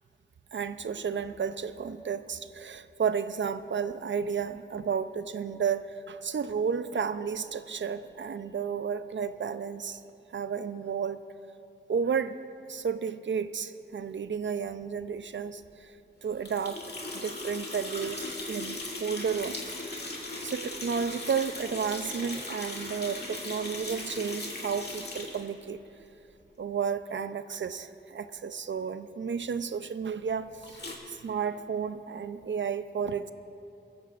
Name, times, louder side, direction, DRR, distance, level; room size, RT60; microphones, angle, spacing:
voice 1, 0.5-10.0 10.3-11.2 11.9-12.4 12.7-15.9 16.2-16.8 17.1-19.6 20.4-25.8 26.6-30.5 31.1-33.3, right 6 dB, 70° right, 12 dB, 0.5 m, -32 dB
sound 1, 16.4-25.5 30.6-31.0, left 2 dB, 55° left, 2.1 m, -38 dB
20.0 x 15.0 x 2.5 m, 2.8 s
wide cardioid pair, 60°, 20 cm